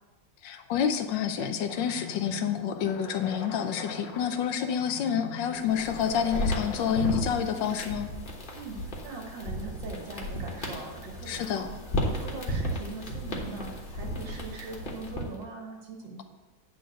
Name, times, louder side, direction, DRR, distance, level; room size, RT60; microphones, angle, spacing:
voice 1, 0.4-8.1 11.3-11.7, left 8 dB, 85° left, 7 dB, 1.4 m, -28 dB
sound 1, 1.6-7.6, left 6 dB, 60° left, 0.9 m, -42 dB
sound 2, 5.6-15.4, equal, 30° left, 1.3 m, -34 dB
voice 2, 8.5-11.7 12.1-16.2, right 3 dB, 85° right, 0 dB, 2.2 m, -41 dB
9.2 x 3.9 x 6.5 m, 1.2 s
omnidirectional pair, 1.9 m